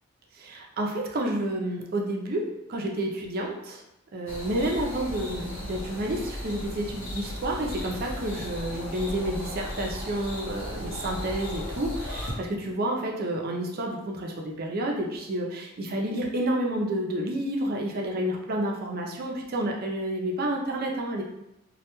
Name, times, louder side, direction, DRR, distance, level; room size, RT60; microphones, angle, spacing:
voice 1, 0.5-3.8 4.1-21.2, right 1 dB, 50° right, 0 dB, 0.4 m, -30 dB
sound 1, 4.3-12.3, left 1 dB, 85° left, 0.8 m, -36 dB
2.2 x 2.1 x 2.9 m, 0.86 s
head